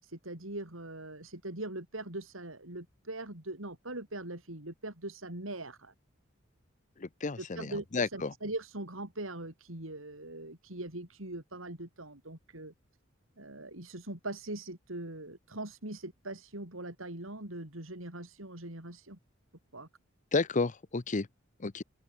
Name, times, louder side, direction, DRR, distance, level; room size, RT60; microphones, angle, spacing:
voice 1, 0.0-5.9 7.4-12.7 13.4-19.2 19.7-19.9, right 2 dB, 90° right, 5.7 m, -41 dB
voice 2, 7.0-8.3 20.3-21.3 21.6-21.8, left 3 dB, 40° left, 0.7 m, -31 dB
head